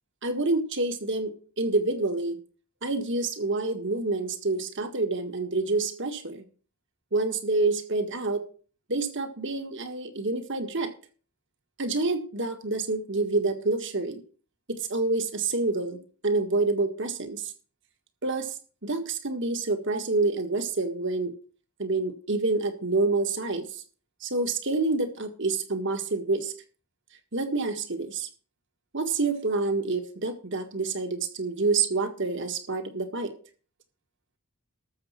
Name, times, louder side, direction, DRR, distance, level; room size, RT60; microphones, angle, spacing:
voice 1, 0.2-1.3 1.6-2.4 2.8-6.4 7.1-8.4 8.9-10.9 11.8-14.2 14.7-17.5 18.2-18.5 18.8-21.3 21.8-23.8 24.2-26.5 27.3-28.3 28.9-33.3, right 3 dB, 55° right, 8 dB, 1.7 m, -27 dB
13.5 x 7.1 x 5.7 m, 0.40 s
head